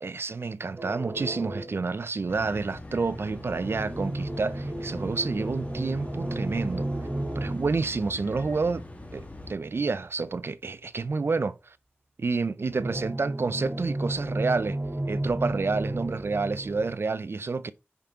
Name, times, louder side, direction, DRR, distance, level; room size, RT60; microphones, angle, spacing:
voice 1, 0.0-6.9 7.4-8.8 9.1-11.8 12.2-14.8 15.1-17.7, right 4 dB, 70° right, 0.4 m, -29 dB
sound 1, 0.8-2.0 3.1-9.3 12.7-16.9, right 1 dB, 35° right, 2.1 m, -34 dB
sound 2, 2.3-9.5, left 2 dB, 35° left, 1.4 m, -42 dB
5.7 x 5.3 x 3.5 m
wide cardioid pair, 65°, 4 cm